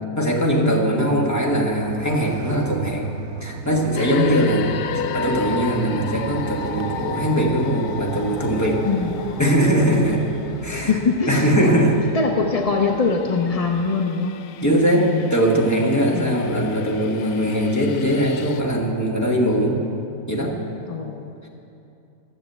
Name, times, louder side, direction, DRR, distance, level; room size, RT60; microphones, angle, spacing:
voice 1, 0.1-4.7 5.1-8.8 9.4-10.2 10.6-10.9 11.3-11.9 14.6-19.8 20.3-20.6 21.4-21.5, equal, 10° left, -2 dB, 1.4 m, -20 dB
Motorcycle, 1.7-13.9, right 7 dB, 70° right, 0.6 m, -35 dB
sound 1, 4.0-18.6, left 8 dB, 85° left, 1.1 m, -34 dB
voice 2, 4.4-4.7 8.8-9.1 10.7-11.9 12.1-14.3 14.7-15.3 16.1-16.4 20.9-21.4, left 4 dB, 50° left, 2 dB, 0.4 m, -23 dB
13.0 x 7.2 x 7.9 m, 2.7 s
omnidirectional pair, 1.6 m